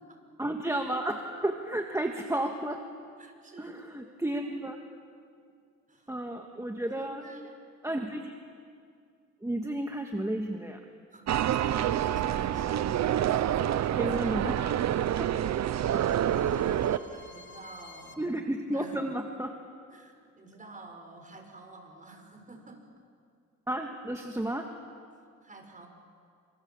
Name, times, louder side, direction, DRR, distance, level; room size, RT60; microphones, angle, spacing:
voice 1, 0.4-2.8 3.6-4.8 6.1-7.3 7.8-8.3 9.4-10.8 14.0-14.7 15.2-15.3 18.2-19.5 23.7-24.7, right 1 dB, 10° right, 3 dB, 1.8 m, -32 dB
voice 2, 3.2-4.2 5.9-6.1 6.9-7.5 7.8-8.1 11.1-11.3 11.6-12.9 13.2-14.7 15.6-18.2 18.7-19.0 19.9-22.8 25.4-25.9, right 2 dB, 25° right, 4 dB, 6.2 m, -48 dB
sound 1, 11.3-17.0, right 11 dB, 60° right, 0.9 m, -27 dB
sound 2, 12.6-18.1, left 2 dB, 40° left, 3.2 m, -54 dB
30.0 x 26.5 x 7.4 m, 2.3 s
cardioid pair, 90°, 30 cm